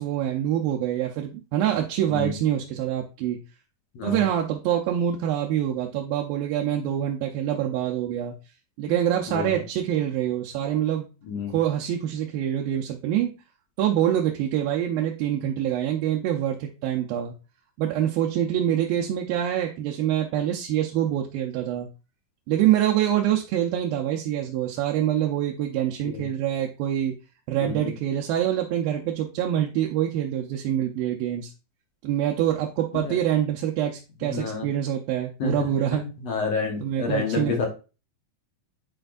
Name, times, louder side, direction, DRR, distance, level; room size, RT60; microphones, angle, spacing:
voice 1, 0.0-3.4 4.0-8.3 8.8-11.1 11.5-13.3 13.8-17.3 17.8-21.9 22.5-27.2 27.5-31.5 32.0-36.1 36.8-37.7, right 11 dB, 85° right, 1 dB, 2.6 m, -25 dB
voice 2, 9.3-9.6 11.2-11.6 26.0-26.3 27.6-27.9 32.9-33.2 34.3-34.7 35.4-35.5 36.2-37.7, left 5 dB, 60° left, 2 dB, 1.9 m, -29 dB
10.5 x 4.4 x 2.5 m, 0.31 s
omnidirectional pair, 4.1 m